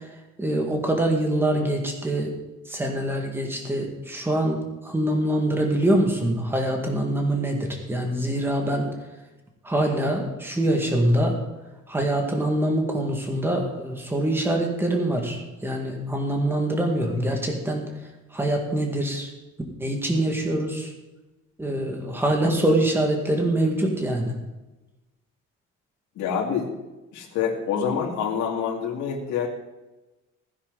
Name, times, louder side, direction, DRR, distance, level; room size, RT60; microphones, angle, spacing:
voice 1, 0.4-2.3 2.7-8.9 9.6-11.4 11.9-17.9 18.3-19.3 19.8-20.9 21.6-24.3, right 1 dB, 10° right, 2 dB, 1.9 m, -24 dB
voice 2, 26.2-26.7 27.1-29.5, left 7 dB, 70° left, -1 dB, 2.4 m, -26 dB
16.5 x 10.0 x 4.0 m, 1.1 s
cardioid pair, 175°, 29 cm